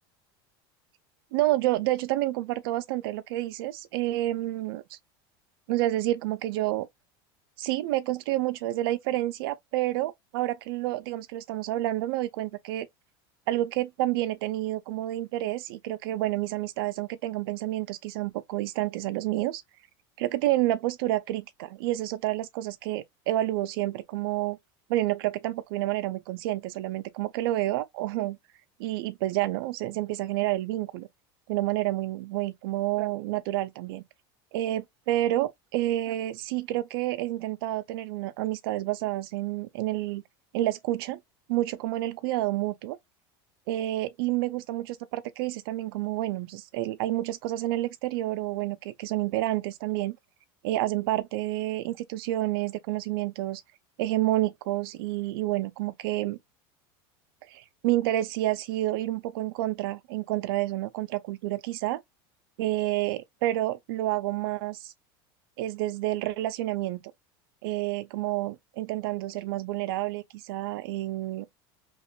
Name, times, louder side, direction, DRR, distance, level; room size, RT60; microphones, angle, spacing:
voice 1, 1.3-5.0 5.7-6.9 7.6-12.9 13.5-19.6 20.2-24.6 24.9-28.4 28.8-31.1 31.5-34.0 34.5-40.2 40.5-41.2 41.5-43.0 43.7-50.2 50.6-53.6 54.0-56.4 57.5-62.0 62.6-64.9 65.6-67.0 67.6-71.5, right 15 dB, 75° right, 0.4 m, -29 dB
3.0 x 2.9 x 3.0 m
supercardioid pair, 150°, 12 cm